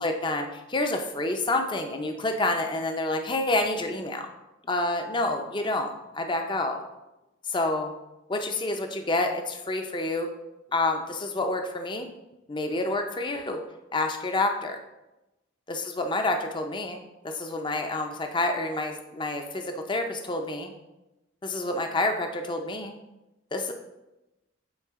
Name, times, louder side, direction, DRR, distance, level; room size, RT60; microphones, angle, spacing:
voice 1, 0.0-4.3 4.7-6.8 7.5-7.9 8.3-10.3 10.7-12.1 12.5-13.6 13.9-14.8 15.7-20.7 21.4-23.0 23.5-23.7, left 2 dB, 25° left, 5 dB, 0.5 m, -28 dB
8.4 x 4.2 x 3.6 m, 0.98 s
head